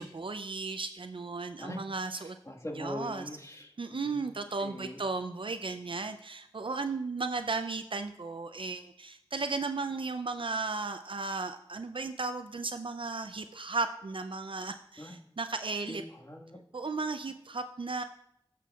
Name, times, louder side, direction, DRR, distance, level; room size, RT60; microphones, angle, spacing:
voice 1, 0.0-2.4 2.7-3.3 3.8-16.0 16.7-18.0, right 3 dB, 65° right, 8 dB, 0.4 m, -35 dB
voice 2, 2.1-5.0 15.0-15.2 15.9-16.6, left 1 dB, 30° left, 1 dB, 1.5 m, -42 dB
14.0 x 6.0 x 2.3 m, 0.76 s
wide cardioid pair, 40°, 9 cm